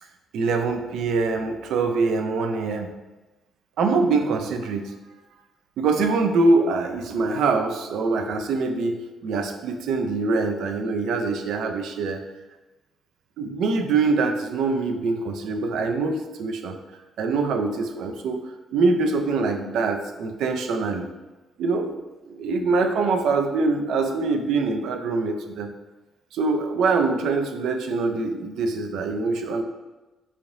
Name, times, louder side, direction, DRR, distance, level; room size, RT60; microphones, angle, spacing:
voice 1, 0.3-2.9 3.8-4.9 5.8-12.2 13.4-16.8 17.2-21.1 21.6-21.9 22.3-25.7 26.3-29.6, right 3 dB, 80° right, 5 dB, 0.4 m, -24 dB
3.7 x 3.1 x 2.6 m, 1.1 s
cardioid pair, 90°, 0 cm